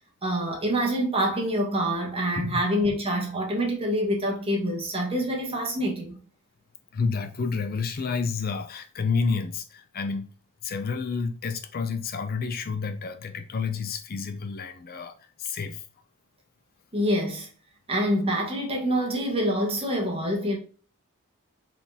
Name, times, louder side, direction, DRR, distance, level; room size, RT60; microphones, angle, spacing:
voice 1, 0.2-6.2 16.9-17.5 17.9-20.6, equal, 25° right, 1.5 m, -26 dB
voice 2, 6.9-10.3 10.6-15.8, left 5 dB, 45° left, 0.5 m, -30 dB
4.2 x 3.7 x 2.7 m
head